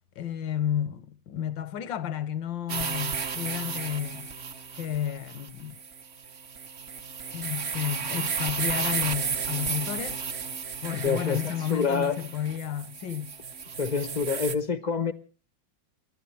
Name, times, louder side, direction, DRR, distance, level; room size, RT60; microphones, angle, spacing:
voice 1, 0.2-4.3 4.7-5.7 7.3-10.2 10.8-13.3, left 10 dB, 80° left, 1.6 m, -32 dB
sound 1, 2.7-14.6, right 6 dB, 45° right, 0.9 m, -33 dB
voice 2, 10.9-12.2 13.8-15.1, left 5 dB, 45° left, 0.5 m, -27 dB
29.5 x 12.0 x 3.2 m
omnidirectional pair, 2.0 m